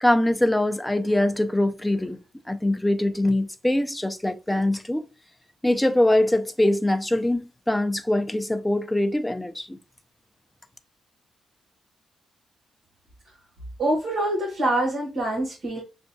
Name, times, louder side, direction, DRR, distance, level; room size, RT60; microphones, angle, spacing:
voice 1, 0.0-2.2 2.5-5.1 5.6-9.8, left 1 dB, 5° left, 0.4 m, -23 dB
voice 2, 13.8-15.8, right 1 dB, 60° right, 1.2 m, -25 dB
5.4 x 2.2 x 2.6 m
wide cardioid pair, 145°, 0 cm